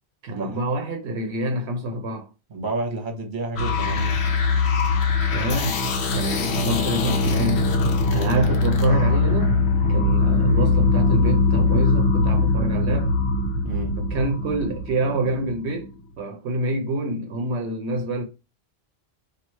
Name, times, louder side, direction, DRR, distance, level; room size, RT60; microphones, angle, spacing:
voice 1, 0.2-2.3 5.3-7.6 8.1-9.6 9.9-13.1 14.0-18.2, right 1 dB, 75° right, 0.9 m, -27 dB
voice 2, 2.5-4.2 13.6-14.0, right 2 dB, 50° right, 1.1 m, -30 dB
sound 1, 3.6-15.9, left 3 dB, 75° left, 1.0 m, -21 dB
3.0 x 2.7 x 4.3 m
omnidirectional pair, 1.1 m